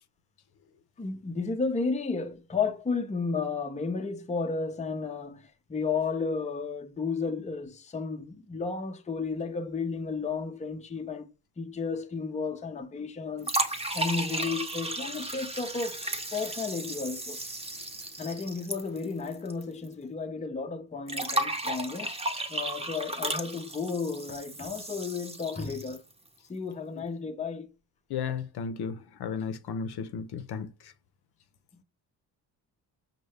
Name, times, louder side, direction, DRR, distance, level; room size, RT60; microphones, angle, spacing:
voice 1, 1.0-17.4 18.2-22.1 22.5-26.0 26.5-27.7 31.7-31.8, left 4 dB, 15° left, 0.6 m, -33 dB
sound 1, 13.4-19.6 19.9-20.0 21.1-26.1, right 1 dB, 15° right, 0.8 m, -34 dB
voice 2, 28.1-30.7, left 6 dB, 65° left, 0.6 m, -34 dB
5.2 x 2.2 x 3.3 m
cardioid pair, 70°, 42 cm